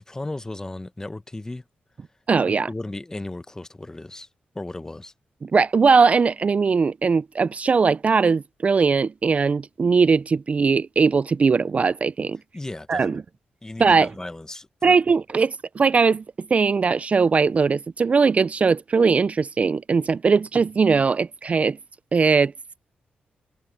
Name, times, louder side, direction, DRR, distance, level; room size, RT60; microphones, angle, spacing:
voice 1, 0.0-1.6 2.5-4.3 4.5-5.1 12.5-13.2 13.6-15.0, left 2 dB, 15° left, 0.7 m, -35 dB
voice 2, 2.3-2.7 5.4-12.4 12.9-13.2 13.8-14.1 14.8-21.8 22.1-22.5, right 5 dB, 40° right, 0.3 m, -20 dB
cardioid pair, 85°, 4 cm